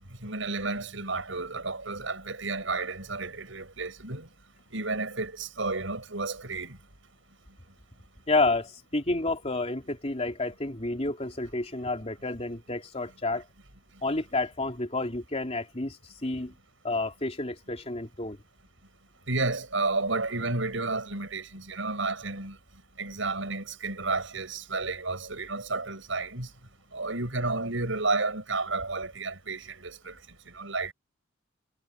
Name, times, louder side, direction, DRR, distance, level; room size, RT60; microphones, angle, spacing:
voice 1, 0.2-4.3 4.7-6.8 19.3-22.6 23.0-26.5 26.9-30.2 30.5-30.9, right 3 dB, 80° right, 6.6 m, -31 dB
voice 2, 8.3-13.4 14.0-16.5 16.8-18.4, left 2 dB, 35° left, 3.4 m, -30 dB
head